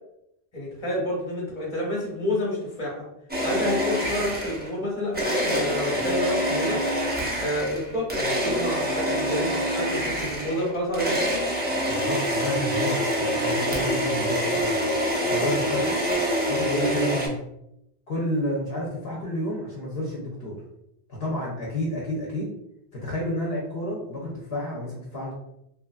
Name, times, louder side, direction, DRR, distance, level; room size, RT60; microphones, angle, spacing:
voice 1, 0.5-3.0 3.4-6.8 7.4-11.2, left 1 dB, 30° left, -4 dB, 1.0 m, -29 dB
sound 1, 3.3-4.7 5.1-17.3, equal, 15° right, 0.4 m, -26 dB
voice 2, 11.9-14.8 15.2-15.9 16.5-17.4 18.1-20.6 21.1-22.5 22.9-25.3, left 1 dB, 65° left, -4 dB, 0.9 m, -30 dB
3.0 x 2.4 x 2.3 m, 0.80 s
omnidirectional pair, 1.1 m